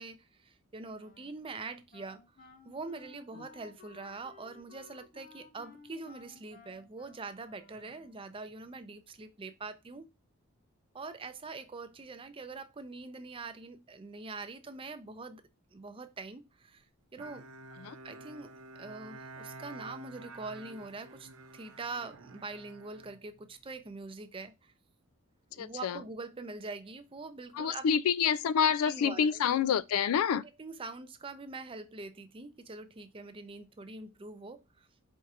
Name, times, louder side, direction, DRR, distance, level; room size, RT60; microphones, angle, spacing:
voice 1, 0.0-10.1 10.9-15.4 15.7-16.8 17.1-17.5 18.0-24.7 25.5-27.9 28.8-29.6 30.6-34.9, right 3 dB, 25° right, 0.5 m, -44 dB
Wind instrument woodwind instrument, 1.0-8.4, left 4 dB, 40° left, 0.7 m, -57 dB
Bowed string instrument, 17.2-23.8, right 2 dB, 80° right, 0.6 m, -50 dB
voice 2, 25.6-26.0 27.6-30.4, left 7 dB, 85° left, 0.3 m, -27 dB
4.4 x 2.5 x 4.1 m
head